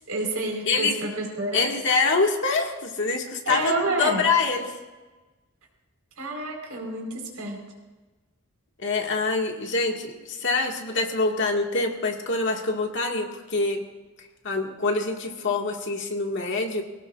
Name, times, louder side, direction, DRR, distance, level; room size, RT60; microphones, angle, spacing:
voice 1, 0.1-1.7 3.5-4.2 6.2-7.6, right 2 dB, 75° right, 1 dB, 4.5 m, -29 dB
voice 2, 0.7-1.0 1.5-4.7 8.8-13.8 14.4-16.8, left 3 dB, 55° left, 1 dB, 1.9 m, -25 dB
23.5 x 18.0 x 2.5 m, 1.2 s
head